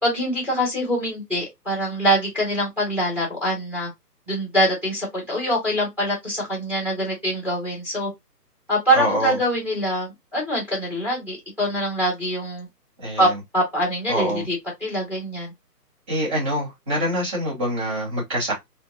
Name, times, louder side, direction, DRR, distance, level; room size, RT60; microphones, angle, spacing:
voice 1, 0.0-3.9 4.3-8.1 8.7-12.7 13.2-13.3 13.5-14.6 14.8-15.5, equal, 5° right, 1.9 m, -24 dB
voice 2, 8.9-9.4 13.0-13.4 14.1-14.4 16.1-18.5, equal, 20° right, 2.1 m, -25 dB
4.0 x 2.8 x 2.9 m
figure-of-eight pair, 140°, 48 cm